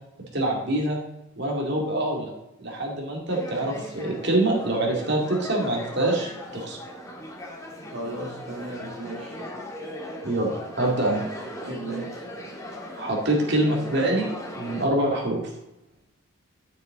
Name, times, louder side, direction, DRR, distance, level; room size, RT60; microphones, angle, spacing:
voice 1, 0.3-1.0 1.4-2.3 2.6-6.8 10.2-10.5 10.8-11.2 13.0-14.3 14.5-15.4, right 1 dB, 55° right, 0 dB, 2.4 m, -25 dB
sound 1, 3.3-14.9, left 1 dB, 15° left, 1.6 m, -38 dB
voice 2, 7.9-9.4 11.6-12.2, right 2 dB, 75° right, -3 dB, 2.0 m, -35 dB
12.0 x 6.6 x 3.8 m, 0.86 s
head